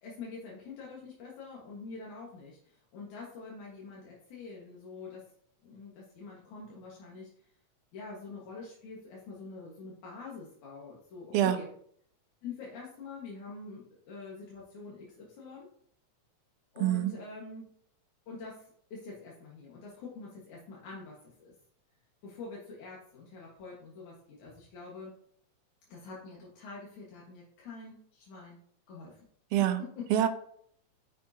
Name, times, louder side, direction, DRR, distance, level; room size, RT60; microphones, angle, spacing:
voice 1, 0.0-5.2 5.6-7.5 7.9-11.7 12.4-15.7 16.7-17.7 18.3-21.5 22.2-25.1 25.9-28.6 28.9-29.2 29.8-30.1, left 4 dB, 85° left, -4 dB, 3.0 m, -45 dB
voice 2, 16.8-17.1 29.5-29.8 30.1-30.3, right 11 dB, 70° right, 8 dB, 1.6 m, -25 dB
9.1 x 7.4 x 2.8 m, 0.63 s
omnidirectional pair, 3.3 m